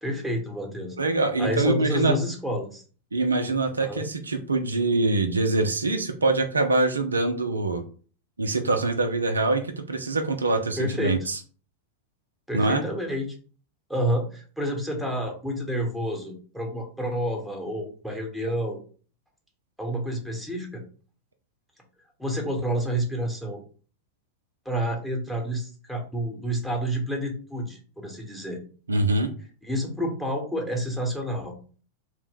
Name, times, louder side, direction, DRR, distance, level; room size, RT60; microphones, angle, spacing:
voice 1, 0.0-1.0 1.4-2.8 3.8-4.1 10.8-11.1 12.5-13.3 13.9-18.8 19.8-20.8 22.2-23.6 24.6-28.6 29.6-31.5, equal, ahead, 1 dB, 0.8 m, -29 dB
voice 2, 1.0-2.2 3.1-7.8 8.4-11.4 12.5-12.8 28.9-29.3, right 2 dB, 75° right, 6 dB, 0.3 m, -24 dB
2.5 x 2.0 x 3.6 m, 0.41 s
figure-of-eight pair, 90°, 0 cm